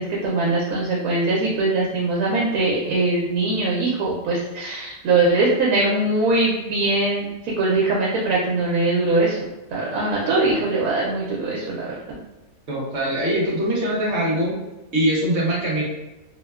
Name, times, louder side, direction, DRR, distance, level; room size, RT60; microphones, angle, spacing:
voice 1, 0.0-9.4 9.7-11.9, right 2 dB, 85° right, -4 dB, 1.1 m, -21 dB
voice 2, 12.7-14.6 14.9-15.8, right 1 dB, 55° right, -3 dB, 0.9 m, -22 dB
2.8 x 2.1 x 2.2 m, 1.0 s
omnidirectional pair, 1.5 m